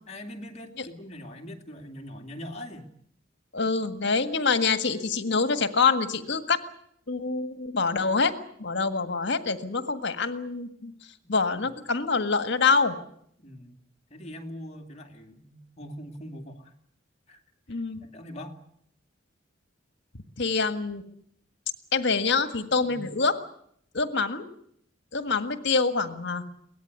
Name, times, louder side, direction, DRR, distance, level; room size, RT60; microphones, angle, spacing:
voice 1, 0.1-2.9 11.2-11.3 11.6-11.7 13.4-13.7 14.1-16.7 17.3-17.4 17.7-17.8 18.1-18.6 22.9-23.1, equal, 35° left, 3 dB, 2.6 m, -42 dB
voice 2, 3.5-6.6 7.1-8.3 8.6-10.9 11.3-13.0 17.7-18.0 20.4-21.0 21.9-23.4 23.9-24.4 25.1-26.4, left 4 dB, 65° left, 9 dB, 1.7 m, -25 dB
23.0 x 18.5 x 9.6 m, 0.69 s
head